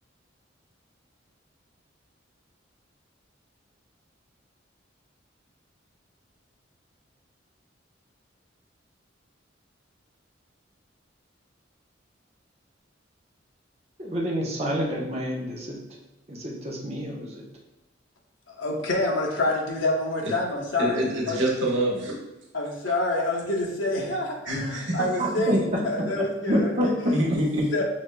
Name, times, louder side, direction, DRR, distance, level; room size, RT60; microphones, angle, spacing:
voice 1, 14.0-15.8 16.3-17.4 25.2-25.5 26.2-27.1, equal, 35° right, -2 dB, 0.9 m, -28 dB
voice 2, 18.5-21.0 21.3-21.4 22.5-27.2 27.7-27.8, left 2 dB, 80° left, -1 dB, 0.9 m, -27 dB
voice 3, 20.8-22.2 24.4-25.0 25.5-25.6 27.1-27.7, right 1 dB, 75° right, -3 dB, 1.2 m, -25 dB
6.1 x 3.5 x 2.2 m, 0.92 s
head